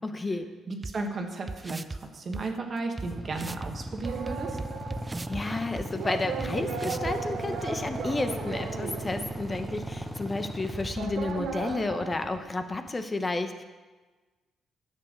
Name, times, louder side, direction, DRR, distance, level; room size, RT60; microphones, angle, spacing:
voice 1, 0.0-0.5 5.3-13.6, left 2 dB, 25° left, 8 dB, 0.9 m, -31 dB
voice 2, 0.7-4.6, right 3 dB, 45° right, 3 dB, 1.5 m, -35 dB
sound 1, 0.8-0.9 1.5-2.0 2.3-2.4 3.0-3.1 3.3-3.7 4.0-5.4 5.8-5.9 6.4-6.5 6.8-7.1, right 3 dB, 20° right, 0.4 m, -36 dB
Motorcycle / Idling, 3.0-12.9, right 1 dB, 5° right, 0.9 m, -38 dB
sound 2, 4.0-10.0 10.4-10.5 10.9-12.4, right 5 dB, 80° right, 1.8 m, -37 dB
10.5 x 7.3 x 6.5 m, 1.3 s
cardioid pair, 90°, 0 cm